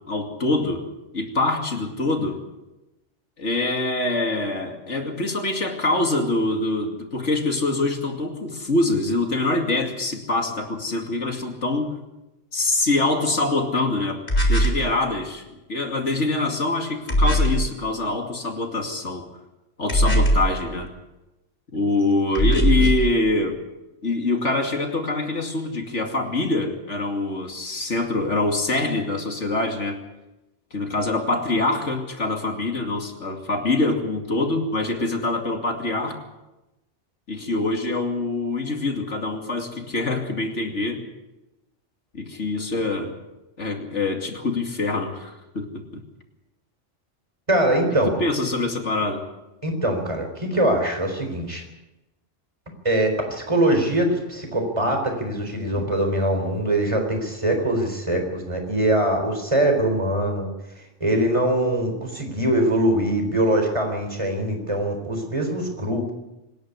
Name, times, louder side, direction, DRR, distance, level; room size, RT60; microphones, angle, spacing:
voice 1, 0.1-0.9 1.1-2.4 3.4-11.9 12.5-14.2 14.5-15.4 15.7-19.3 19.8-20.9 21.7-23.6 24.0-30.0 30.7-36.2 37.3-41.0 42.1-43.1 43.6-46.0 48.1-49.2, left 2 dB, 80° left, 3 dB, 2.9 m, -24 dB
sound 1, 14.3-14.9 17.1-17.7 19.9-20.6 22.3-23.1, equal, 45° left, 4.3 m, -19 dB
voice 2, 47.5-48.1 49.6-51.6 52.8-60.5 61.0-66.1, right 1 dB, 25° right, 4 dB, 4.1 m, -22 dB
25.5 x 10.5 x 9.6 m, 0.98 s
omnidirectional pair, 1.2 m